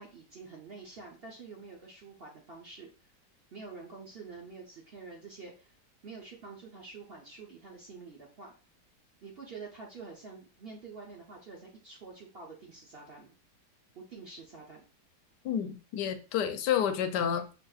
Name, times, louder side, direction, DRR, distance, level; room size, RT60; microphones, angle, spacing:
voice 1, 0.0-3.1 3.5-5.7 6.0-8.5 9.2-13.4 14.0-14.8, right 4 dB, 50° right, 0.8 m, -47 dB
voice 2, 15.4-17.5, left 9 dB, 85° left, 1.2 m, -30 dB
5.8 x 2.6 x 2.4 m
omnidirectional pair, 1.8 m